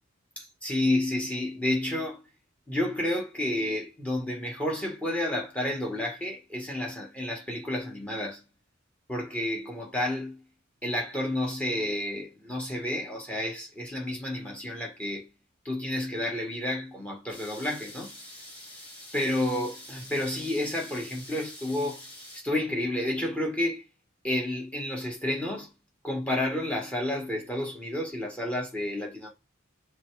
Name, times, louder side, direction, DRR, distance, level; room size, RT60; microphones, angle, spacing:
voice 1, 0.4-2.2 2.7-8.4 9.1-10.4 10.8-15.3 15.7-18.1 19.1-22.0 22.3-23.8 24.2-25.7 26.0-29.3, left 1 dB, 5° left, 2.0 m, -30 dB
sound 1, 17.3-22.4, left 1 dB, 25° left, 2.9 m, -46 dB
5.9 x 3.5 x 5.1 m
head